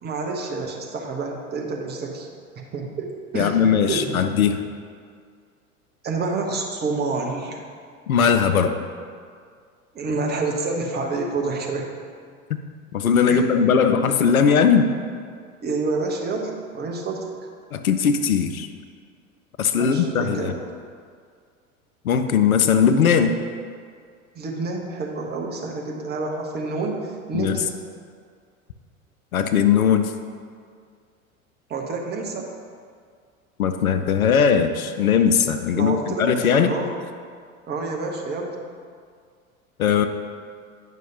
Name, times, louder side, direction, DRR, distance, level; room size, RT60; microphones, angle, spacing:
voice 1, 0.0-2.3 2.6-4.2 6.0-7.6 9.9-11.9 13.3-13.7 15.6-17.3 19.7-20.6 24.3-27.8 31.7-32.5 35.7-36.9 37.7-38.6, right 3 dB, 25° right, 0 dB, 1.1 m, -28 dB
voice 2, 3.3-4.6 8.1-8.7 12.9-14.9 17.7-18.7 19.6-20.5 22.0-23.3 27.3-27.6 29.3-30.1 33.6-36.7 39.8-40.1, left 7 dB, 75° left, 8 dB, 0.6 m, -19 dB
9.2 x 5.5 x 3.9 m, 2.1 s
figure-of-eight pair, 80°, 43 cm